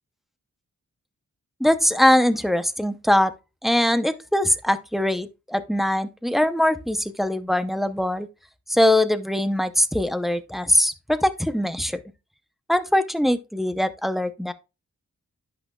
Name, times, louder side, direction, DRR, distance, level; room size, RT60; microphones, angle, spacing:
voice 1, 1.6-3.3 3.6-8.3 8.7-12.0 12.7-14.5, left 1 dB, ahead, 0.6 m, -22 dB
10.5 x 6.1 x 2.2 m
wide cardioid pair, 100°, 32 cm